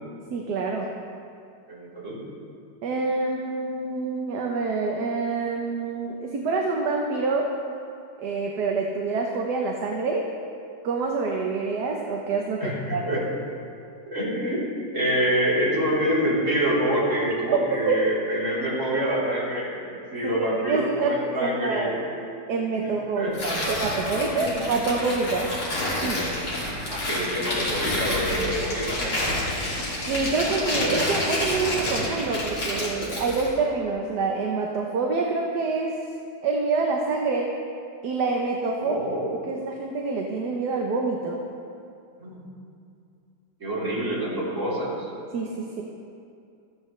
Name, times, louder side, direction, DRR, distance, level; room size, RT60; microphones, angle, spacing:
voice 1, 0.3-0.9 2.8-7.5 8.2-10.2 10.8-13.2 17.9-18.0 20.2-22.0 22.5-25.5 26.0-26.2 30.1-35.9 36.4-37.5 38.0-39.0 39.4-41.4 45.3-45.8, right 4 dB, 65° right, 0 dB, 1.4 m, -26 dB
voice 2, 1.7-2.2 12.6-13.2 14.1-14.6 14.9-22.0 23.2-23.3 24.2-24.6 26.9-29.3 38.8-39.3 42.2-42.4 43.6-44.9, equal, 40° right, -8 dB, 4.1 m, -26 dB
Tearing, 23.3-33.5, left 1 dB, 85° left, 3.4 m, -28 dB
15.5 x 14.0 x 3.2 m, 2.5 s
omnidirectional pair, 2.0 m